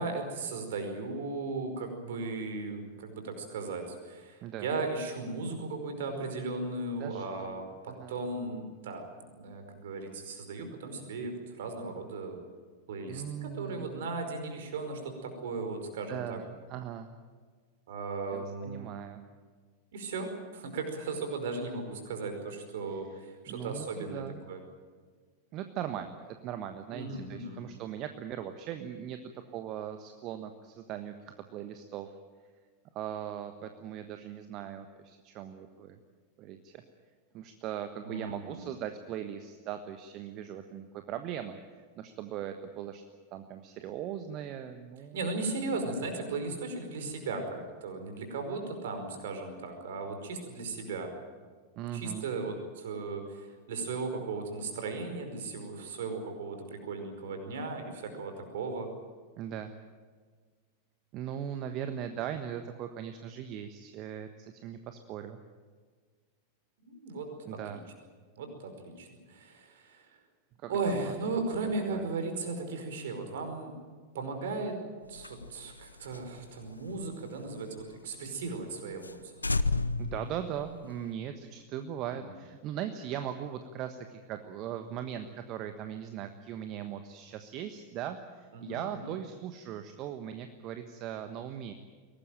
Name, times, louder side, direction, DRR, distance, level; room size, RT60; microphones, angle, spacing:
voice 1, 0.0-9.0 9.3-12.4 12.9-16.4 17.9-19.0 19.9-24.6 26.9-27.6 38.0-38.6 45.1-51.1 51.9-58.9 66.8-67.8 68.4-70.1 70.7-73.7 74.1-74.7 75.1-79.7 82.1-82.2 88.5-89.1, right 3 dB, 55° right, 5 dB, 5.0 m, -36 dB
voice 2, 7.0-8.1 13.1-14.0 16.1-17.1 18.3-19.2 23.5-24.4 25.5-32.1 32.9-36.0 36.4-36.8 37.3-43.0 43.3-45.2 45.7-45.8 46.1-46.2 51.8-52.3 59.4-59.7 61.1-65.4 67.4-67.8 70.6-71.1 71.6-72.1 80.0-91.7, right 10 dB, 40° right, 8 dB, 1.3 m, -39 dB
sound 1, 75.1-77.9 78.3-78.4 78.7-78.8 79.0-79.2 79.4-81.1, left 3 dB, 80° left, 0.7 m, -34 dB
22.5 x 18.5 x 9.1 m, 1.5 s
figure-of-eight pair, 90°, 0 cm